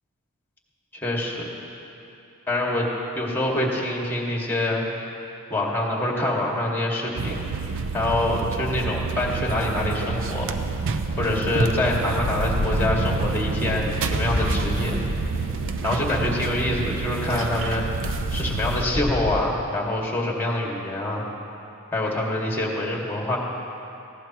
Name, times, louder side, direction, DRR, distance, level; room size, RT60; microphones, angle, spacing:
voice 1, 1.0-1.5 2.5-2.9 3.1-4.9 5.5-7.4 7.9-10.5 11.2-14.9 15.8-17.9 18.3-21.2 21.9-23.4, left 1 dB, 10° left, -2 dB, 1.9 m, -25 dB
sound 1, 7.2-18.8, right 4 dB, 60° right, 0.7 m, -28 dB
sound 2, 12.1-16.0 17.9-19.5, left 1 dB, 40° left, 0.8 m, -30 dB
20.0 x 15.5 x 3.0 m, 2.8 s
head